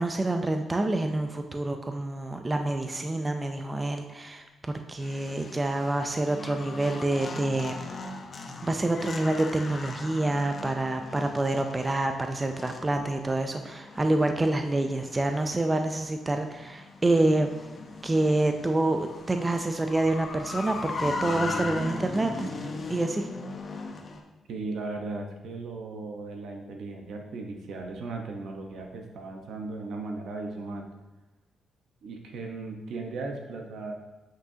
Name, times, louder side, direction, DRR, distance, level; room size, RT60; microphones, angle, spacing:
voice 1, 0.0-7.8 8.6-17.5 18.0-22.5 22.9-23.3, right 2 dB, 20° right, 6 dB, 0.5 m, -27 dB
sound 1, 5.0-24.2, left 3 dB, 40° left, 0.8 m, -39 dB
voice 2, 24.5-30.9 32.0-34.0, right 3 dB, 75° right, 3 dB, 1.0 m, -37 dB
8.2 x 6.1 x 2.8 m, 1.1 s
cardioid pair, 95°, 0 cm